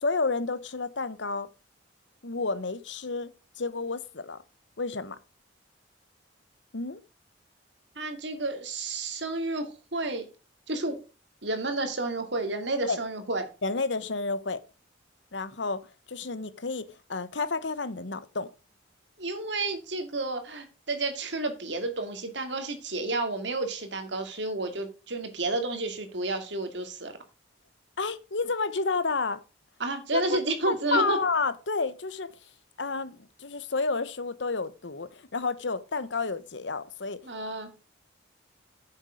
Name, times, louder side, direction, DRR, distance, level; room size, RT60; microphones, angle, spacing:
voice 1, 0.0-1.5 2.2-3.3 3.6-4.4 4.8-5.2 6.7-7.0 12.8-13.0 13.6-14.6 15.3-18.5 28.0-29.4 30.1-30.4 30.6-32.5 32.8-37.2, left 4 dB, 70° left, 1.0 m, -30 dB
voice 2, 8.0-10.3 10.7-11.0 11.4-13.4 19.2-27.1 29.8-31.2 37.2-37.7, right 2 dB, 70° right, 2.4 m, -31 dB
10.5 x 7.3 x 5.0 m
head